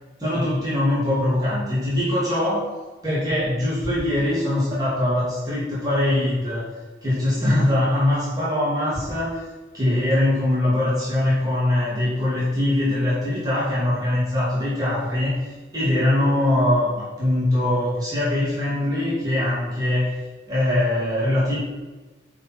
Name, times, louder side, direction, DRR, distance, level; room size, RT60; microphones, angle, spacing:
voice 1, 0.2-6.7 7.0-9.5 9.7-20.2 20.5-21.6, left 1 dB, 20° right, -9 dB, 3.1 m, -22 dB
10.5 x 4.8 x 6.4 m, 1.2 s
head